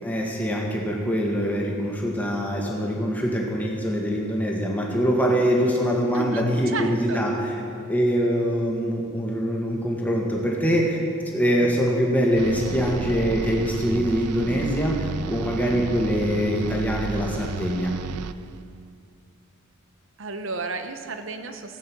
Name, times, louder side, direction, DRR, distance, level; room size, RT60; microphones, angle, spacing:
voice 1, 0.0-7.5 7.9-11.0 11.3-18.0, equal, 5° left, -2 dB, 1.7 m, -24 dB
voice 2, 6.1-7.2 20.2-21.8, right 3 dB, 60° right, 8 dB, 0.9 m, -32 dB
sound 1, 12.3-18.6, right 5 dB, 90° right, 0.4 m, -33 dB
15.0 x 9.2 x 6.2 m, 2.3 s
head